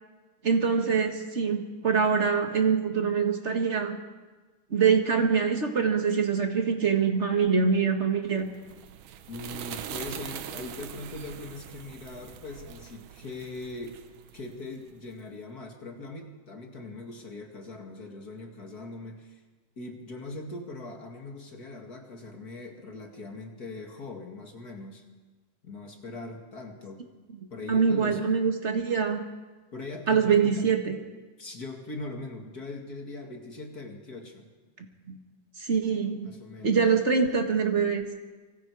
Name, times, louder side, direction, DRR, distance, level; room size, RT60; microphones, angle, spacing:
voice 1, 0.4-4.0 4.7-8.5 27.7-29.2 30.1-31.0 34.8-35.2 35.6-36.3 36.6-38.1, right 6 dB, 40° right, 4 dB, 1.0 m, -24 dB
sound 1, 8.4-15.0, right 9 dB, 80° right, 2.5 m, -42 dB
voice 2, 9.3-14.0 14.3-19.4 19.8-25.0 25.6-27.1 27.5-28.2 29.7-30.7 31.4-34.5 36.2-36.8, left 2 dB, 35° left, 2 dB, 2.2 m, -41 dB
25.5 x 24.5 x 4.8 m, 1.3 s
omnidirectional pair, 3.6 m